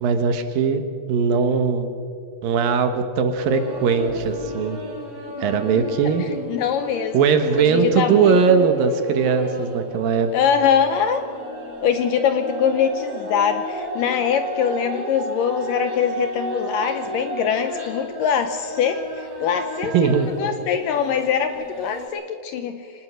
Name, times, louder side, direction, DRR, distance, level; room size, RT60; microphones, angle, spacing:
voice 1, 0.0-0.8 1.1-1.9 2.4-4.8 5.4-6.2 7.1-10.3 19.9-20.3, right 6 dB, 70° right, 7 dB, 2.7 m, -19 dB
sound 1, 3.3-22.1, equal, 45° right, 6.0 m, -33 dB
voice 2, 5.8-7.2 7.6-8.7 10.3-11.2 11.8-22.9, left 7 dB, 75° left, 8 dB, 2.1 m, -23 dB
25.0 x 19.5 x 6.4 m, 2.4 s
omnidirectional pair, 4.6 m